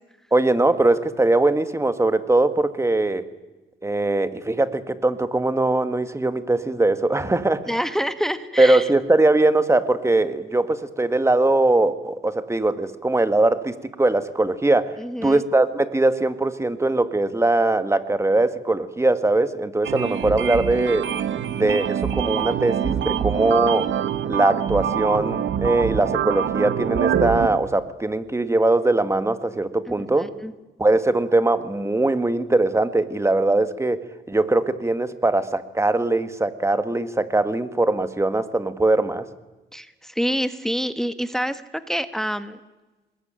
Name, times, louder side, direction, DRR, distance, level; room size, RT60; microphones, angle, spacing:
voice 1, 0.3-3.2 3.8-7.6 8.6-15.0 15.2-21.1 21.5-23.9 24.3-30.3 30.8-39.3, right 2 dB, 15° right, 10 dB, 1.9 m, -21 dB
voice 2, 7.7-8.9 15.0-15.4 29.9-30.5 39.7-42.6, equal, ahead, 10 dB, 1.4 m, -27 dB
sound 1, 19.8-27.5, right 9 dB, 70° right, 1.8 m, -25 dB
25.5 x 21.0 x 9.1 m, 1.2 s
cardioid pair, 90°, 20 cm